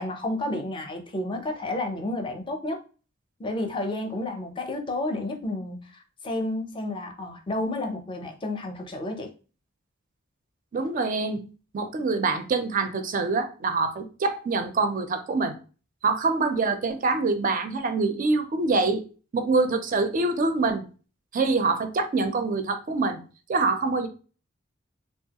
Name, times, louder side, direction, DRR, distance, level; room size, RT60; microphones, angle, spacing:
voice 1, 0.0-2.8 3.4-9.3, left 1 dB, 25° left, 0.5 m, -31 dB
voice 2, 10.7-11.5 11.7-15.6 16.0-19.0 19.3-20.9 21.3-23.2 23.5-24.1, right 3 dB, 45° right, 0.4 m, -25 dB
2.9 x 2.3 x 2.8 m
head